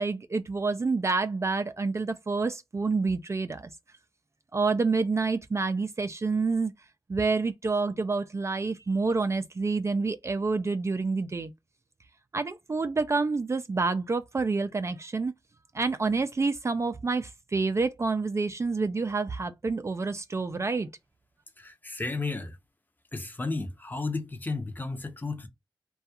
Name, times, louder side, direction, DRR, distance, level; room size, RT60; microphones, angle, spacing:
voice 1, 0.0-3.7 4.5-6.7 7.1-11.5 12.3-15.3 15.7-20.9, right 4 dB, 35° right, 0.3 m, -28 dB
voice 2, 21.6-22.6 23.1-25.5, left 3 dB, 20° left, 0.6 m, -33 dB
2.3 x 2.3 x 2.7 m
wide cardioid pair, 70°, 8 cm